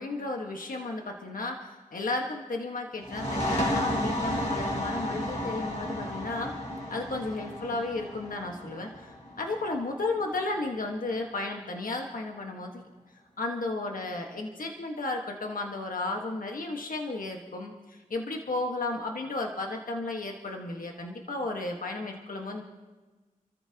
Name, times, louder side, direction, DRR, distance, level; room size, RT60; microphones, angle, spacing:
voice 1, 0.0-6.5 6.9-12.8 13.4-22.6, left 2 dB, 75° left, 2 dB, 1.5 m, -33 dB
sound 1, 3.0-10.4, left 1 dB, 50° left, 5.1 m, -32 dB
28.5 x 14.0 x 2.9 m, 1.3 s
wide cardioid pair, 60°, 14 cm